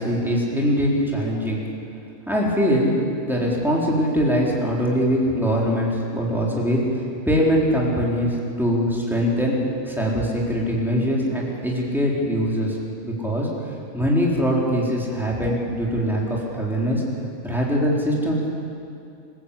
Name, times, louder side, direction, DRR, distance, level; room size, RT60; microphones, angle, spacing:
voice 1, 0.0-1.6 2.3-2.9 3.2-6.8 7.3-9.6 9.9-12.8 13.0-13.5 13.9-17.0 17.4-18.5, equal, ahead, -4 dB, 4.2 m, -22 dB
26.5 x 14.5 x 8.8 m, 2.6 s
omnidirectional pair, 1.5 m